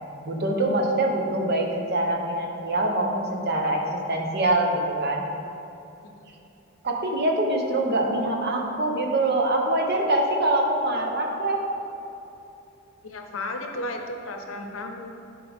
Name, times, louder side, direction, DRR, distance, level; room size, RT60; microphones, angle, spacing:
voice 1, 0.2-5.2 6.8-11.7, right 1 dB, 55° right, 1 dB, 0.9 m, -24 dB
voice 2, 13.0-15.1, left 1 dB, 80° left, 4 dB, 0.8 m, -34 dB
10.5 x 5.1 x 3.5 m, 2.8 s
head